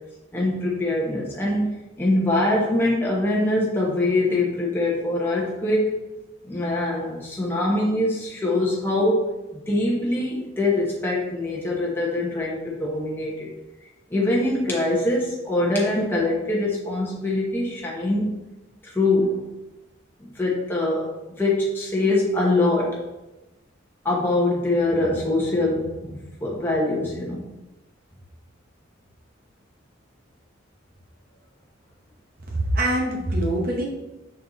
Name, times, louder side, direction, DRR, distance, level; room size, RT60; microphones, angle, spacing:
voice 1, 0.3-6.0 6.4-13.5 14.1-18.3 18.8-19.4 20.3-23.0 24.0-27.4, left 2 dB, 10° left, -5 dB, 1.0 m, -23 dB
voice 2, 32.5-33.9, right 1 dB, 50° right, -1 dB, 1.0 m, -24 dB
5.4 x 4.4 x 3.9 m, 1.0 s
head